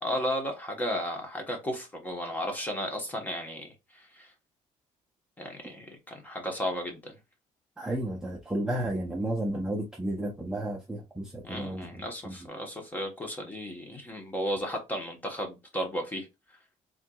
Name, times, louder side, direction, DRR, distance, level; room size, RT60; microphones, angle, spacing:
voice 1, 0.0-3.7 3.9-4.3 5.4-7.1 11.4-16.3, equal, 15° left, 1.1 m, -34 dB
voice 2, 7.8-12.4, right 1 dB, 5° right, 0.6 m, -32 dB
4.5 x 3.6 x 2.3 m
cardioid pair, 175°, 13 cm